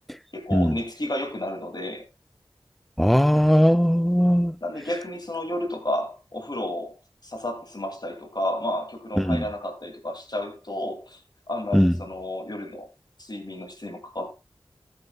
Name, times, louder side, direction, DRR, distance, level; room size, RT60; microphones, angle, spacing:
voice 1, 0.3-2.1 4.6-7.0 7.2-11.2 11.5-12.9 13.2-14.3, left 1 dB, 50° left, 2.8 m, -31 dB
voice 2, 3.0-4.5 9.2-9.4 11.7-11.9, equal, ahead, 0.5 m, -19 dB
13.5 x 9.9 x 2.4 m
wide cardioid pair, 40°, 9 cm